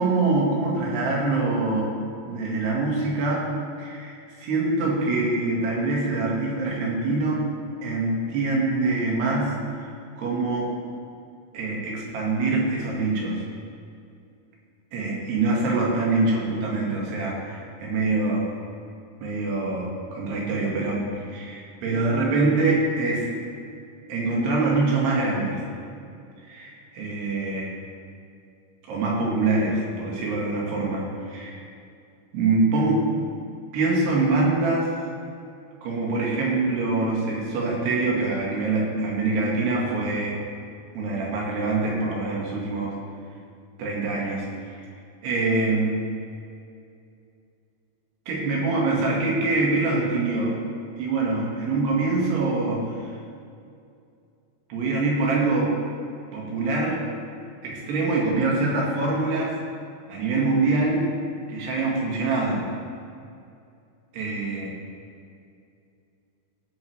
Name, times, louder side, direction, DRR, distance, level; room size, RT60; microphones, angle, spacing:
voice 1, 0.0-1.9 2.2-3.5 3.8-7.4 7.8-9.9 10.2-10.7 11.5-13.4 14.9-18.5 19.2-23.3 24.1-25.6 26.5-27.7 28.9-31.6 32.3-33.2 33.7-34.9 35.8-40.4 40.9-42.9 43.8-44.8 45.2-46.0 48.3-50.6 51.0-53.1 54.7-55.7 56.3-57.0 57.6-59.6 60.1-61.1 61.5-62.7 64.1-64.8, right 3 dB, 85° right, -3 dB, 4.0 m, -24 dB
17.0 x 7.8 x 3.4 m, 2.5 s
omnidirectional pair, 4.6 m